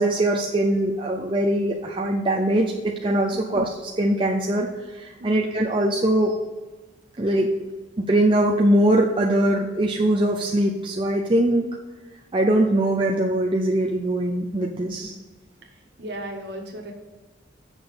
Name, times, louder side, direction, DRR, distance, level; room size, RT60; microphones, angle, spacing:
voice 1, 0.0-4.7 4.9-6.3 7.2-7.5 8.0-11.7 12.3-15.1, right 1 dB, 25° right, -1 dB, 0.6 m, -22 dB
voice 2, 16.0-16.9, right 1 dB, 55° right, 1 dB, 1.6 m, -36 dB
7.7 x 6.2 x 5.2 m, 1.3 s
head